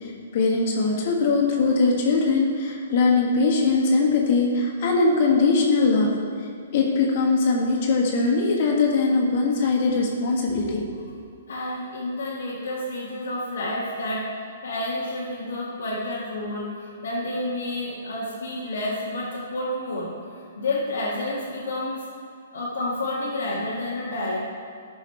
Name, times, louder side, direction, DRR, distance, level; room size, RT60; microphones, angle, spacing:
voice 1, 0.0-6.1 6.7-10.8, left 3 dB, 50° left, 0 dB, 1.5 m, -21 dB
voice 2, 11.5-14.2 14.6-20.1 20.3-22.0 22.5-24.4, left 1 dB, 80° left, -9 dB, 2.0 m, -29 dB
11.0 x 5.6 x 4.5 m, 2.4 s
hypercardioid pair, 140°, 0 cm